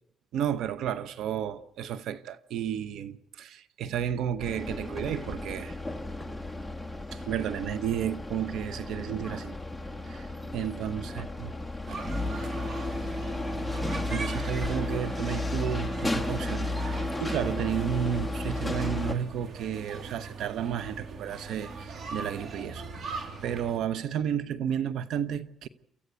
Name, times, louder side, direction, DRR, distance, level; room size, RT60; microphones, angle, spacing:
voice 1, 0.3-5.8 7.1-9.6 10.1-10.3 10.5-11.5 13.7-13.8 14.1-25.7, right 9 dB, 80° right, 0.9 m, -32 dB
sound 1, 4.4-19.1, left 2 dB, ahead, 1.7 m, -33 dB
voice 2, 10.7-13.0, left 3 dB, 35° left, 5.3 m, -54 dB
sound 2, 11.9-23.8, right 3 dB, 55° right, 2.9 m, -41 dB
28.0 x 14.5 x 8.1 m
cardioid pair, 90°, 0 cm